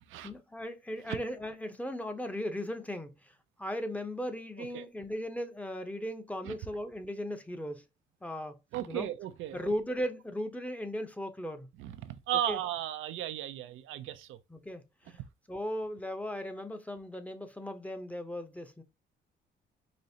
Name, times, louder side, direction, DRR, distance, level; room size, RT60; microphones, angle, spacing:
voice 1, 0.2-3.2 3.6-7.8 8.2-8.5 8.9-9.1 9.5-11.7 12.5-12.6 14.5-15.2 15.5-18.8, equal, 5° left, 0.7 m, -37 dB
voice 2, 8.7-9.7 11.8-14.4, right 11 dB, 85° right, 0.5 m, -35 dB
5.1 x 2.0 x 2.7 m
cardioid pair, 90°, 20 cm